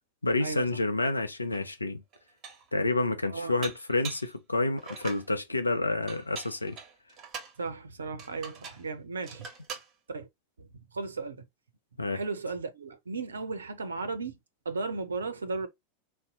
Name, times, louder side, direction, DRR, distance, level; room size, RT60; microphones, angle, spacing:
voice 1, 0.2-2.0 2.7-6.8 12.0-12.2, left 2 dB, 90° left, 0.5 m, -29 dB
Dishes pots and pans, 1.5-1.6 2.1-2.7 3.6-4.3 4.8-5.3 6.1-7.6 8.2-8.9 9.2-9.9, right 6 dB, 30° right, 1.2 m, -43 dB
voice 2, 3.3-3.7 7.6-9.5 10.1-10.3 10.6-11.4 12.1-14.4 14.7-15.7, right 3 dB, 80° right, 0.5 m, -35 dB
2.7 x 2.1 x 3.7 m
figure-of-eight pair, 90°, 0 cm